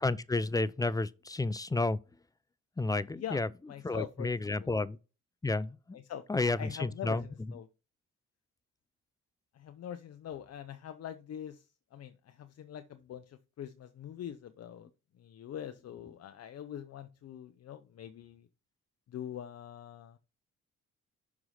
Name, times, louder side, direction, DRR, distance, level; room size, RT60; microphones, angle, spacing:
voice 1, 0.0-2.0 2.8-3.5 3.8-5.0 5.4-6.0 6.3-7.2, left 2 dB, 10° left, 0.5 m, -31 dB
voice 2, 3.7-4.3 4.6-4.7 5.9-6.2 6.6-7.7 9.5-14.9 15.2-18.5 19.1-20.2, left 10 dB, 55° left, 0.7 m, -43 dB
6.2 x 4.8 x 5.6 m
cardioid pair, 90°, 30 cm